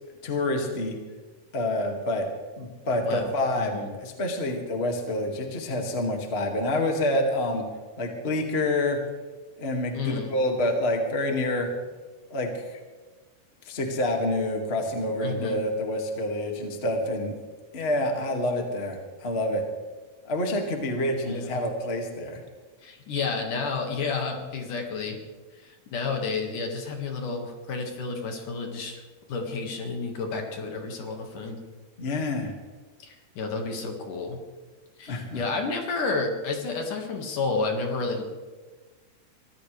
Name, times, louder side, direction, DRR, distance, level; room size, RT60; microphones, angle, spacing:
voice 1, 0.2-1.0 1.5-2.2 2.6-7.6 8.0-9.0 9.6-11.7 12.3-12.8 13.6-17.3 17.7-19.6 20.2-22.4 32.0-32.5 35.1-35.4, left 1 dB, 25° left, 2 dB, 1.3 m, -27 dB
voice 2, 3.0-3.9 9.9-10.3 15.2-15.6 21.2-21.7 22.8-25.2 25.5-29.0 29.3-31.6 33.0-34.4 35.0-38.2, left 4 dB, 60° left, 2 dB, 3.1 m, -31 dB
24.0 x 15.5 x 3.3 m, 1.3 s
omnidirectional pair, 4.5 m